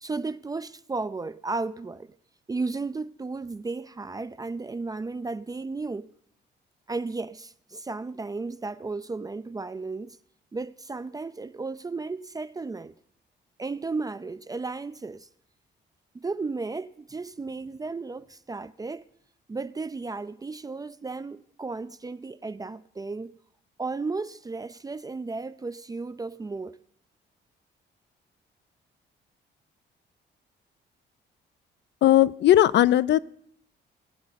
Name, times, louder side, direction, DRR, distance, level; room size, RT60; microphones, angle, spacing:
voice 1, 0.0-2.1 2.5-6.1 6.9-10.2 10.5-12.9 13.6-15.3 16.1-19.0 19.5-23.3 23.8-26.8, right 3 dB, 20° right, 0.4 m, -34 dB
voice 2, 32.0-33.2, left 13 dB, 65° left, 0.4 m, -18 dB
20.0 x 7.9 x 4.0 m
cardioid pair, 90°, 20 cm